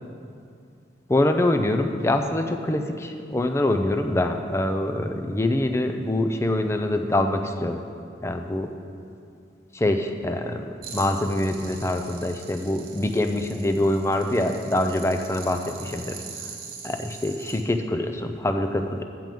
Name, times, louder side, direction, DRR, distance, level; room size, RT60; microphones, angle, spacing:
voice 1, 1.1-7.9 8.2-8.7 9.7-16.2 16.8-19.0, left 1 dB, 15° left, 6 dB, 0.4 m, -25 dB
sound 1, 10.8-17.6, right 5 dB, 55° right, 1.0 m, -42 dB
7.6 x 5.3 x 7.5 m, 2.4 s
head